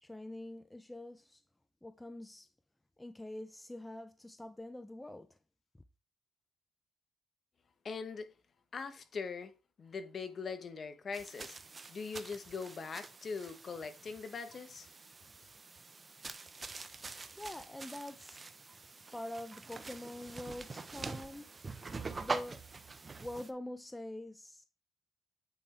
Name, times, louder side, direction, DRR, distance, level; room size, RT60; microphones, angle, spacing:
voice 1, 0.0-1.4 1.8-2.5 3.0-5.4 17.4-18.4 19.1-21.5 22.2-22.6 23.2-24.6, left 1 dB, 10° left, 0.5 m, -45 dB
voice 2, 7.8-8.3 8.7-9.5 9.8-11.5 11.9-14.9, left 5 dB, 45° left, 1.0 m, -41 dB
sound 1, 11.1-23.5, right 4 dB, 30° right, 0.7 m, -45 dB
8.4 x 3.5 x 4.3 m
cardioid pair, 90°, 0 cm